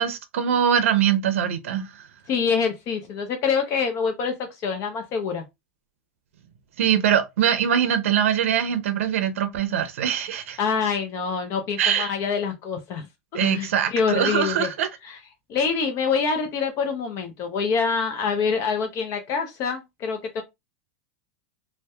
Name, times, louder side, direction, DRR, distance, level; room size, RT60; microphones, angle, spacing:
voice 1, 0.0-2.0 6.8-10.6 11.8-12.1 13.3-14.9, right 9 dB, 80° right, 0.5 m, -23 dB
voice 2, 2.3-4.3 4.6-5.4 10.6-13.1 13.3-14.7 15.0-15.2 15.5-20.4, left 5 dB, 45° left, 0.5 m, -25 dB
2.6 x 2.1 x 2.2 m
hypercardioid pair, 120°, 7 cm